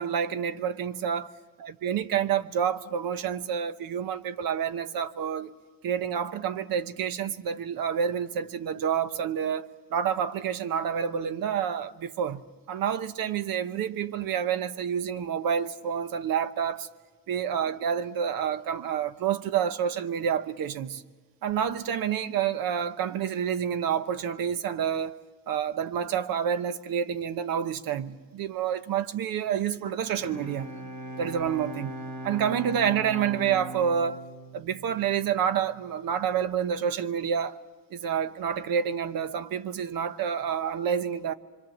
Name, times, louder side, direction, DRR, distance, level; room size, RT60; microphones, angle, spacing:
voice 1, 0.0-1.3 1.6-5.5 5.8-12.4 12.7-16.9 17.3-21.0 21.4-25.2 25.5-30.7 31.2-32.0 32.2-34.2 34.5-37.6 37.9-41.3, right 8 dB, 80° right, 1.0 m, -28 dB
Bowed string instrument, 30.1-35.7, equal, 65° right, 4.4 m, -40 dB
25.5 x 25.0 x 7.2 m
cardioid pair, 175°, 34 cm